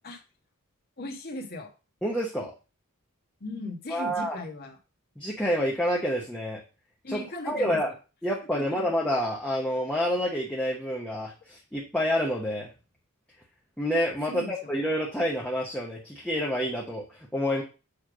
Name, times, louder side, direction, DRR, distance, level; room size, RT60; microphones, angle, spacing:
voice 1, 1.0-1.7 3.4-4.8 7.0-7.8 8.5-8.9 14.3-14.7, left 2 dB, 45° left, 3 dB, 1.6 m, -38 dB
voice 2, 2.0-2.5 3.9-4.4 5.2-6.6 7.1-7.9 8.2-12.7 13.8-17.6, equal, 5° left, -3 dB, 1.1 m, -28 dB
6.9 x 3.4 x 6.1 m, 0.31 s
head